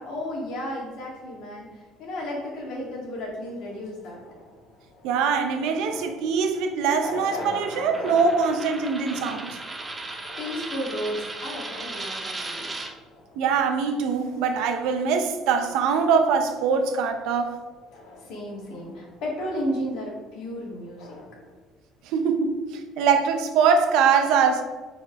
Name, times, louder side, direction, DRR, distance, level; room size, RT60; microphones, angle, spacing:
voice 1, 0.0-4.2 10.4-12.7 18.2-21.2, equal, 60° left, -2 dB, 1.9 m, -33 dB
sound 1, 3.4-16.0 16.3-21.6, left 2 dB, 80° left, 1.4 m, -44 dB
voice 2, 5.0-9.6 13.4-17.6 22.1-22.6 23.0-24.6, right 6 dB, 70° right, 6 dB, 0.7 m, -23 dB
Coin (dropping), 7.4-12.9, right 2 dB, 15° right, 0.6 m, -36 dB
4.9 x 4.3 x 4.8 m, 1.4 s
cardioid pair, 170°, 0 cm